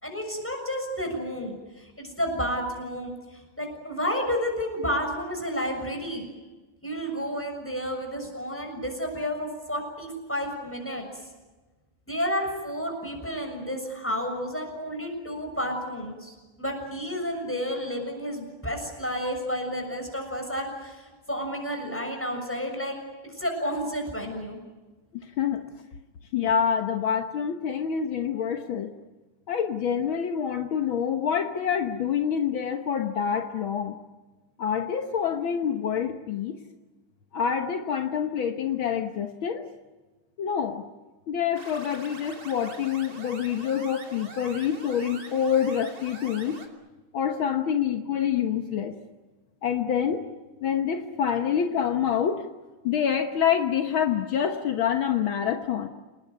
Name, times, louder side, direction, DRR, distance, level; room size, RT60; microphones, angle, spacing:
voice 1, 0.0-6.3 6.8-11.1 12.1-23.0 23.2-24.6, equal, 5° left, 3 dB, 6.7 m, -31 dB
voice 2, 25.2-25.6 26.3-28.9 29.5-34.0 34.6-36.6 37.3-39.7 40.4-40.8 41.3-46.6 47.1-48.9 49.6-50.3 50.6-52.4 52.8-55.9, left 8 dB, 70° left, 5 dB, 2.0 m, -26 dB
sound 1, 41.6-46.7, right 3 dB, 45° right, 3.3 m, -44 dB
28.5 x 19.5 x 9.4 m, 1.2 s
omnidirectional pair, 2.4 m